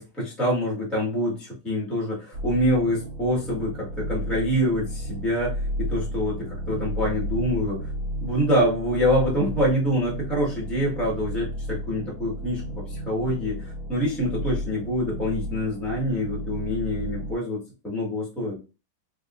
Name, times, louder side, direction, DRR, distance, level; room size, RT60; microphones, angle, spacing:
voice 1, 0.0-7.8 8.2-18.6, equal, ahead, -5 dB, 1.3 m, -26 dB
sound 1, 2.3-17.3, equal, 80° right, 0.5 m, -33 dB
3.7 x 2.7 x 2.5 m, 0.30 s
omnidirectional pair, 2.2 m